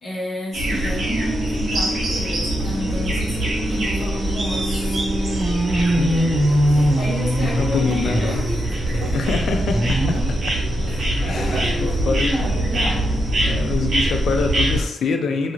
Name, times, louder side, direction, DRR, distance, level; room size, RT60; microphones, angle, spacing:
voice 1, 0.0-5.0 5.9-6.6 7.0-9.2 10.9-13.1, left 1 dB, 45° left, -5 dB, 1.0 m, -32 dB
sound 1, 0.5-14.8, right 1 dB, 50° right, 0.7 m, -23 dB
sound 2, 0.7-10.3 10.7-13.8 14.3-14.4 14.7-14.8, right 1 dB, 5° right, 0.4 m, -25 dB
sound 3, 2.4-13.2, right 3 dB, 85° right, 0.3 m, -37 dB
voice 2, 6.0-7.0 7.4-8.4 9.1-10.6 11.2-12.5 13.4-15.5, left 4 dB, 70° left, 5 dB, 0.4 m, -26 dB
2.6 x 2.4 x 2.9 m, 0.80 s
wide cardioid pair, 140°, 0 cm